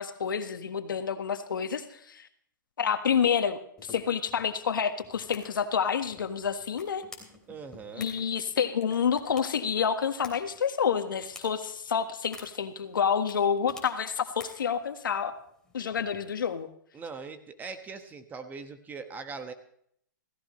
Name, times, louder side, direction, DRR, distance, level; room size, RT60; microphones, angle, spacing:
voice 1, 0.0-2.3 2.8-7.0 7.9-15.3 15.7-16.7, left 7 dB, 85° left, 8 dB, 1.5 m, -28 dB
sound 1, 3.8-16.6, left 3 dB, 5° left, 3.2 m, -53 dB
voice 2, 7.5-8.1 16.9-19.5, right 4 dB, 15° right, 8 dB, 1.3 m, -41 dB
16.5 x 16.0 x 3.2 m, 0.67 s
hypercardioid pair, 135°, 11 cm